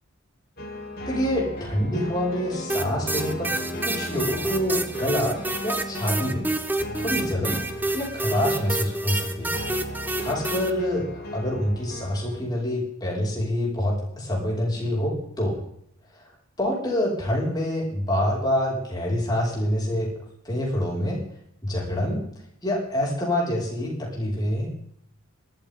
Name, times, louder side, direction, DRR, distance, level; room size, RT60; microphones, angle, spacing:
sound 1, 0.6-12.4, left 1 dB, 45° left, 3.8 m, -36 dB
voice 1, 1.1-3.5 3.8-6.4 7.0-7.6 7.9-9.6 10.2-15.6 16.6-20.1 20.4-21.2 21.6-22.2 22.6-24.7, left 1 dB, 20° left, -3 dB, 5.1 m, -26 dB
sound 2, 2.7-10.7, right 2 dB, 10° right, 0.9 m, -28 dB
19.0 x 13.0 x 3.7 m, 0.72 s
head